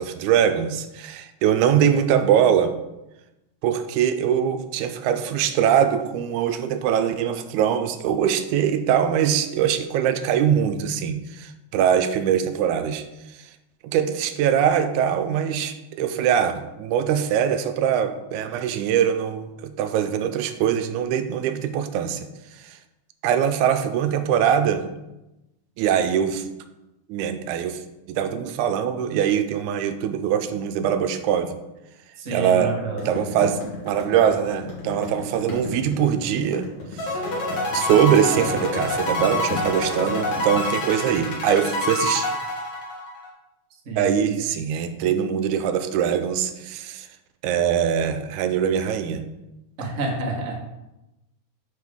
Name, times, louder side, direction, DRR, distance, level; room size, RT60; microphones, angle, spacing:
voice 1, 0.0-2.7 3.6-13.0 13.8-22.3 22.6-22.8 23.2-24.8 25.8-26.5 27.1-27.8 28.1-31.6 32.3-32.7 33.1-36.7 36.9-37.2 37.7-42.3 44.0-47.1 47.4-49.2, right 9 dB, 85° right, 10 dB, 2.0 m, -22 dB
voice 2, 32.2-33.2 43.8-44.3 49.8-50.5, right 2 dB, 55° right, -1 dB, 0.8 m, -29 dB
sound 1, 33.0-40.6, left 3 dB, 50° left, 2.4 m, -34 dB
sound 2, 37.0-43.3, left 2 dB, 75° left, 2.9 m, -27 dB
6.6 x 5.9 x 3.5 m, 0.97 s
omnidirectional pair, 3.4 m